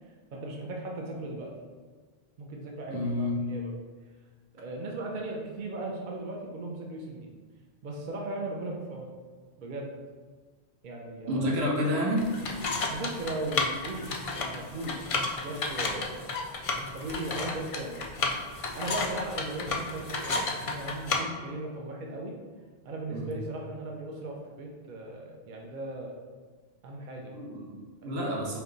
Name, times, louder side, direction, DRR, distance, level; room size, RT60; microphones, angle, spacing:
voice 1, 0.3-1.5 2.4-3.7 4.5-7.3 7.8-9.2 9.6-9.9 10.8-11.5 12.9-15.0 15.4-16.2 16.7-18.1 18.7-22.3 22.8-26.1 26.8-27.3 28.0-28.4, right 2 dB, 55° right, -1 dB, 0.6 m, -37 dB
voice 2, 2.9-3.4 11.3-12.3 23.1-23.3 27.3-28.6, left 1 dB, 80° right, -2 dB, 1.1 m, -29 dB
sound 1, 12.2-21.2, left 3 dB, 60° left, 0.3 m, -32 dB
4.3 x 2.2 x 3.8 m, 1.4 s
omnidirectional pair, 1.1 m